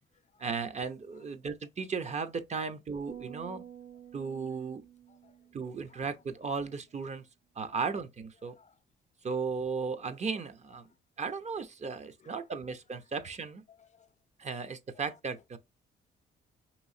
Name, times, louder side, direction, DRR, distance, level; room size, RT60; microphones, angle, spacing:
voice 1, 0.4-3.6 4.1-4.8 5.5-7.2 7.6-8.5 9.2-10.8 11.2-13.6 14.4-15.6, right 5 dB, 35° right, 0.7 m, -36 dB
sound 1, 3.1-6.5, right 9 dB, 75° right, 1.8 m, -50 dB
voice 2, 8.4-8.8 10.8-10.9 11.8-12.5 13.1-13.3 13.7-14.1 14.5-14.6 15.0-15.2, left 6 dB, 35° left, 0.5 m, -62 dB
5.5 x 3.0 x 2.7 m
cardioid pair, 90°, 20 cm